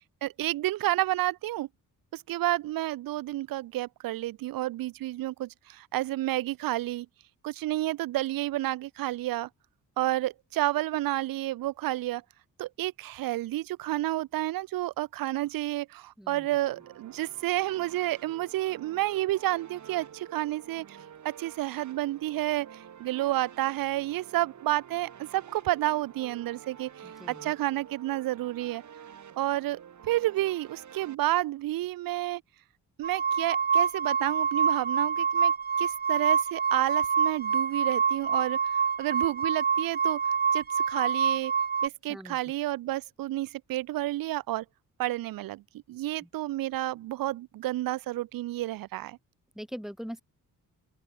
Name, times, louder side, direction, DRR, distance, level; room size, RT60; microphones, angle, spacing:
voice 1, 0.2-1.7 2.1-7.1 7.4-9.5 10.0-12.2 12.6-21.0 21.2-22.7 23.0-26.9 27.3-28.8 29.4-32.4 33.0-35.5 35.8-38.6 39.0-40.2 40.5-41.5 41.8-44.6 45.0-45.6 45.9-49.2, right 16 dB, 90° right, 0.7 m, -30 dB
voice 2, 16.2-16.5 27.0-27.5 42.1-42.6 46.2-46.3 49.5-50.2, equal, ahead, 3.2 m, -42 dB
sound 1, 16.4-31.1, right 8 dB, 55° right, 2.4 m, -49 dB
sound 2, 33.0-41.9, right 6 dB, 30° right, 0.6 m, -26 dB
open air
cardioid pair, 90°, 34 cm